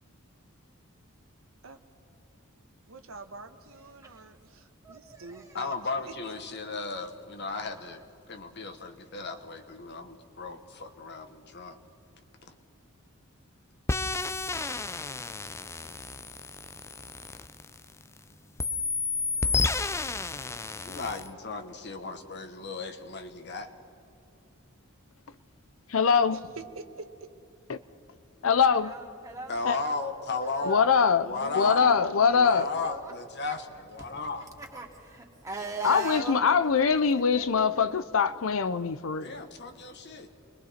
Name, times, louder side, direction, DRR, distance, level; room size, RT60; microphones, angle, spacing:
voice 1, 2.9-5.8 26.3-26.4 26.7-27.3 31.2-32.5, right 2 dB, 75° right, 1.2 m, -46 dB
voice 2, 4.8-5.8 28.7-30.0 30.4-30.9 31.4-32.0 32.4-33.1 34.6-36.5 37.3-37.7, right 2 dB, 15° right, 2.7 m, -40 dB
voice 3, 5.5-11.8 12.4-12.6 20.8-23.7 29.5-30.8 31.2-31.8 32.3-34.5 39.2-40.3, left 3 dB, 55° left, 1.4 m, -35 dB
sound 1, 13.9-18.2 18.6-21.3, left 3 dB, 15° left, 0.4 m, -31 dB
voice 4, 25.9-26.4 27.7-27.8 28.4-28.9 29.6-29.8 30.7-31.3 31.5-32.7 35.8-39.4, left 6 dB, 70° left, 0.6 m, -23 dB
29.5 x 21.5 x 4.3 m
head